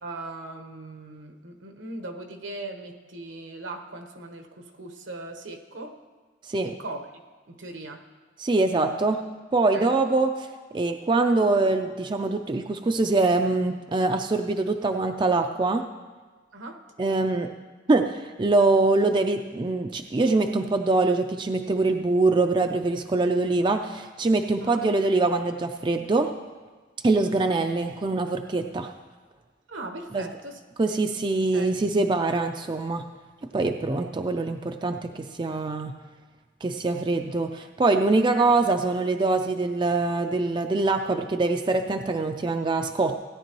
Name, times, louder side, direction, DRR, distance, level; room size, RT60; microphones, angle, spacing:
voice 1, 0.0-6.0 6.6-7.1 7.5-8.0 9.7-10.0 16.5-16.8 24.6-24.8 27.5-27.6 29.7-30.6 30.9-31.0 31.5-31.7, right 2 dB, 80° right, 4 dB, 1.1 m, -39 dB
voice 2, 6.4-6.7 8.4-9.2 9.5-10.5 10.7-15.9 17.0-17.5 17.9-26.3 27.0-28.9 30.1-30.3 30.8-33.0 33.5-36.0 36.6-43.2, right 3 dB, 25° right, 5 dB, 0.4 m, -24 dB
16.5 x 10.0 x 3.0 m, 1.4 s
head